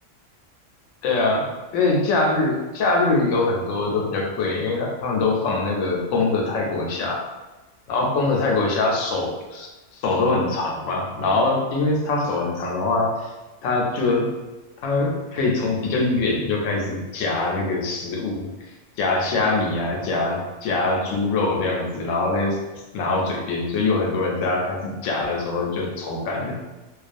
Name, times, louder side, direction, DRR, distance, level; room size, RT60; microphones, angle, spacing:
voice 1, 1.0-7.2 7.9-9.7 10.0-13.3 13.6-14.3 14.8-18.5 19.0-22.6 22.9-26.6, left 3 dB, 90° left, 0 dB, 0.9 m, -23 dB
2.3 x 2.3 x 2.5 m, 1.1 s
omnidirectional pair, 1.3 m